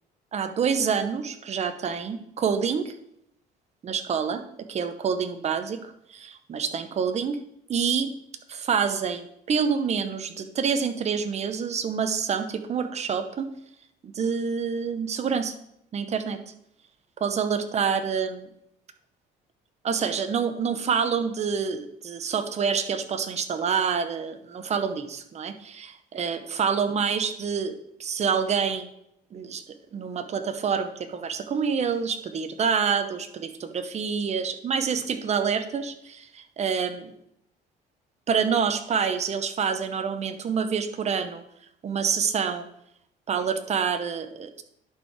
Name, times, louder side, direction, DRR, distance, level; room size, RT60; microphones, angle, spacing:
voice 1, 0.3-2.9 3.8-4.4 4.7-7.4 7.7-8.1 8.5-13.5 14.0-15.5 15.9-16.4 17.2-18.5 19.8-28.9 29.3-29.6 29.9-37.1 38.3-41.4 41.8-42.7 43.3-44.6, right 6 dB, 40° right, 9 dB, 0.8 m, -27 dB
10.5 x 4.5 x 4.7 m, 0.77 s
cardioid pair, 110°, 17 cm